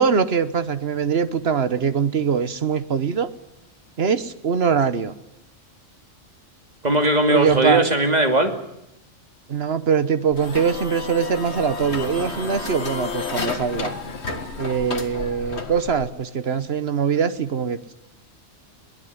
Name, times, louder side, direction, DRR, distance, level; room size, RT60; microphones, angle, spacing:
voice 1, 0.0-3.3 4.0-5.1 7.3-7.8 9.5-13.9 14.6-17.9, right 6 dB, 55° right, 13 dB, 1.3 m, -22 dB
voice 2, 6.8-8.5, right 1 dB, 30° right, 5 dB, 2.6 m, -19 dB
sound 1, 10.3-16.1, left 4 dB, 55° left, 2.0 m, -31 dB
23.0 x 17.5 x 9.6 m, 0.86 s
omnidirectional pair, 1.3 m